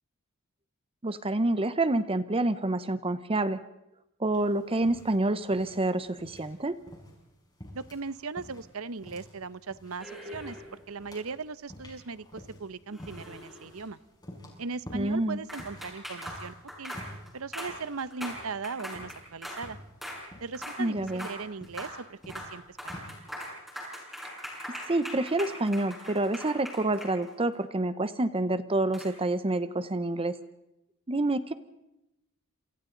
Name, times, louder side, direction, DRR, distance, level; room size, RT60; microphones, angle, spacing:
voice 1, 1.0-3.6 4.2-6.8 14.9-15.4 20.8-21.3 24.9-30.4 31.1-31.5, right 2 dB, 25° right, 13 dB, 0.8 m, -28 dB
sound 1, 4.3-23.2, equal, 20° left, 6.4 m, -50 dB
voice 2, 7.7-14.0 14.6-16.9 17.3-19.8 20.4-23.1, right 4 dB, 75° right, 16 dB, 0.9 m, -38 dB
sound 2, 10.0-10.9 12.9-13.8 15.5-19.7 20.0-20.2 20.5-20.8 21.1-21.4 21.6-22.0 22.2-22.5 22.8-27.5 28.9-29.1, equal, ahead, 6.6 m, -41 dB
28.5 x 28.0 x 4.0 m, 0.89 s
head